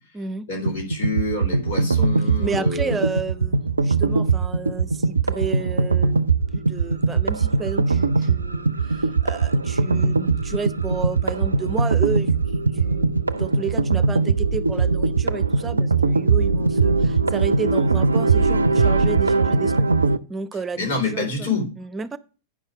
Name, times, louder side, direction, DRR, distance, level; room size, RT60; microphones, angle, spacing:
voice 1, 0.5-3.0 20.7-21.7, left 3 dB, 60° left, 3 dB, 4.0 m, -27 dB
sound 1, 0.7-20.2, right 4 dB, 85° right, 0.4 m, -21 dB
voice 2, 2.4-3.6 3.8-6.2 6.5-12.3 12.7-19.9 20.3-21.5 21.8-22.2, right 5 dB, 20° right, 13 dB, 0.7 m, -32 dB
9.8 x 5.6 x 5.0 m, 0.34 s
figure-of-eight pair, 90°, 0 cm